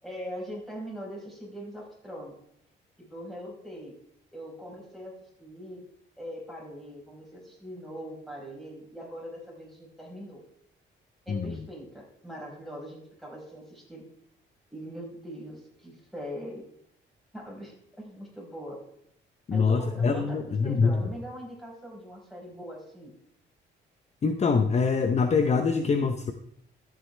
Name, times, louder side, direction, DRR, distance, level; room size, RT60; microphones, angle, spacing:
voice 1, 0.0-2.3 3.1-3.9 4.3-5.8 6.2-10.4 11.2-14.0 14.7-16.6 17.3-18.8 19.5-23.1, equal, ahead, -4 dB, 4.7 m, -41 dB
voice 2, 19.5-20.9 24.2-26.3, left 5 dB, 35° left, 8 dB, 0.7 m, -24 dB
13.5 x 8.1 x 3.3 m, 0.70 s
cardioid pair, 90°, 20 cm